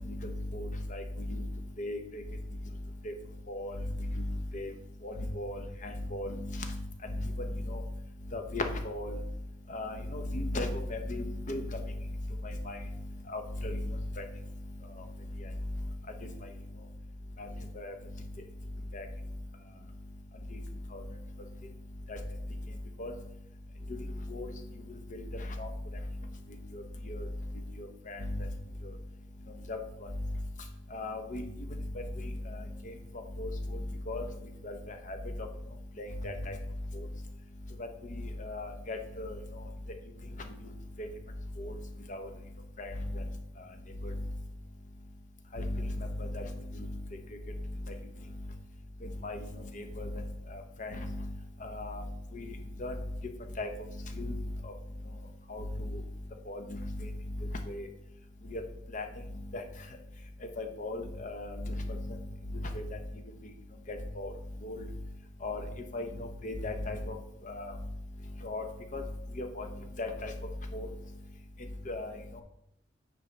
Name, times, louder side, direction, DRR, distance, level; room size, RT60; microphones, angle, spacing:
voice 1, 0.1-1.4 1.8-2.2 3.0-3.1 3.5-4.7 5.0-6.8 7.1-7.2 7.5-7.8 8.3-9.2 9.7-11.6 12.4-12.8 13.3-14.2 17.4-17.5 17.8-17.9 18.9-19.1 20.5-20.6 20.9-21.0 22.1-22.2 23.0-23.1 24.3-24.5 25.1-25.2 25.6-25.7 26.7-27.3 27.8-28.5 29.7-30.1 30.9-31.4 31.9-32.3 33.4-33.8 34.1-34.2 34.6-35.5 36.0-36.5 36.9-37.1 37.8-37.9 38.4-39.4 41.0-41.1 41.6-41.7 42.1-42.3 42.8-43.2 44.0-44.1 45.5-46.4 46.7-46.9 47.9-48.0 49.0-49.4 49.7-50.1 50.5-51.3 51.6-52.0 52.3-52.5 52.8-52.9 53.6-53.7 54.2-54.4 55.5-56.0 56.5-57.1 57.7-57.9 58.5-58.6 58.9-59.1 59.5-59.6 60.6-62.2 62.5-62.8 63.9-64.3 64.6-64.8 65.4-65.6 65.9-67.2 67.4-67.7 68.4-68.6 68.9-69.0 69.4-69.7 70.0-70.3 70.7-70.9 71.9-72.4, left 1 dB, 45° left, 5 dB, 0.8 m, -36 dB
8.5 x 4.5 x 3.3 m, 0.76 s
head